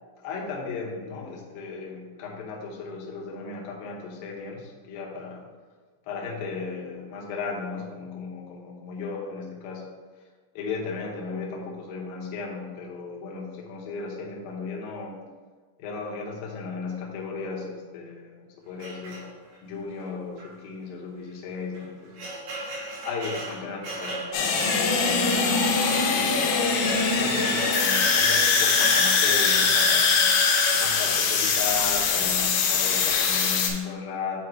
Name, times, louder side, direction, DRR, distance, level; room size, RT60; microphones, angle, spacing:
voice 1, 0.2-5.4 6.1-9.9 10.6-15.2 15.8-19.2 19.6-22.3 23.0-26.5 27.1-30.3 30.8-34.4, left 4 dB, 70° left, -1 dB, 2.4 m, -35 dB
sound 1, 18.8-19.7 20.4-20.5 20.8-20.9 21.6-30.9, right 2 dB, 80° right, 3.8 m, -36 dB
sound 2, 24.3-33.7, left 5 dB, 90° left, 3.1 m, -22 dB
8.5 x 2.9 x 4.5 m, 1.5 s
omnidirectional pair, 5.1 m